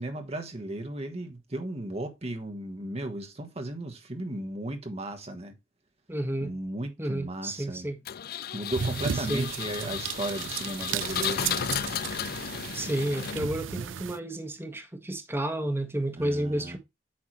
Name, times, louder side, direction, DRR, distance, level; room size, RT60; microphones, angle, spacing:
voice 1, 0.0-5.5 6.4-7.9 8.5-11.7 16.2-16.8, right 1 dB, 35° right, 1.3 m, -35 dB
voice 2, 6.1-6.5 7.0-8.0 9.1-9.5 12.7-16.8, right 1 dB, 10° right, 1.4 m, -31 dB
Engine, 8.1-13.7, left 9 dB, 55° left, 0.4 m, -34 dB
sound 1, 8.7-14.2, right 7 dB, 85° right, 0.5 m, -34 dB
8.8 x 5.9 x 3.1 m
head